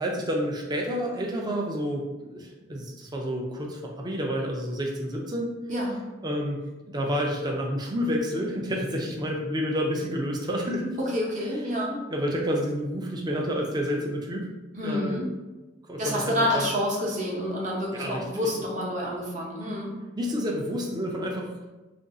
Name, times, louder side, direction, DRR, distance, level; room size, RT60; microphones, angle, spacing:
voice 1, 0.0-5.5 6.2-6.6 6.9-11.0 12.1-14.5 14.8-15.2 15.9-16.6 17.9-18.2 20.2-21.5, equal, 20° right, 0 dB, 0.4 m, -29 dB
voice 2, 11.0-12.0 14.8-15.3 16.0-19.9, equal, 40° right, -3 dB, 0.8 m, -28 dB
2.5 x 2.3 x 3.8 m, 1.1 s
head